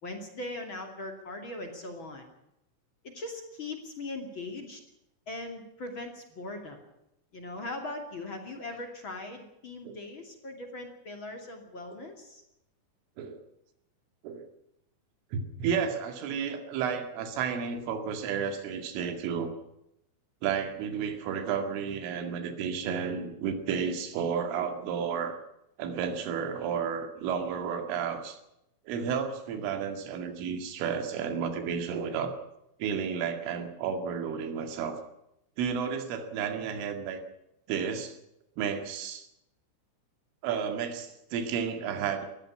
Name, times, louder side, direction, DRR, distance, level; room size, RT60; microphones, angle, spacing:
voice 1, 0.0-2.3 3.0-4.8 5.3-6.8 7.3-12.4, left 2 dB, 35° left, 4 dB, 2.4 m, -40 dB
voice 2, 15.3-19.5 20.4-25.4 25.8-28.4 28.9-32.3 32.8-35.0 35.6-37.2 37.7-38.2 38.6-39.3 40.4-42.3, right 7 dB, 85° right, 6 dB, 4.7 m, -32 dB
20.0 x 14.0 x 9.7 m, 0.83 s
omnidirectional pair, 5.6 m